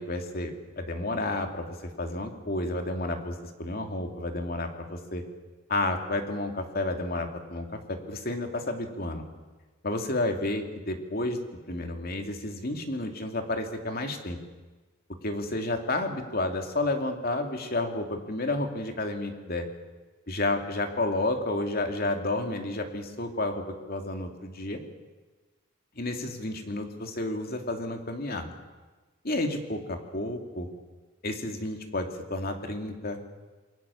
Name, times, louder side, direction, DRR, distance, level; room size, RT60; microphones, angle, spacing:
voice 1, 0.0-5.2 5.7-9.2 9.8-11.4 11.7-14.4 15.2-19.7 20.3-24.8 26.0-28.5 29.2-30.7 31.2-33.2, left 2 dB, 50° left, 4 dB, 2.9 m, -31 dB
27.5 x 23.5 x 7.3 m, 1.3 s
head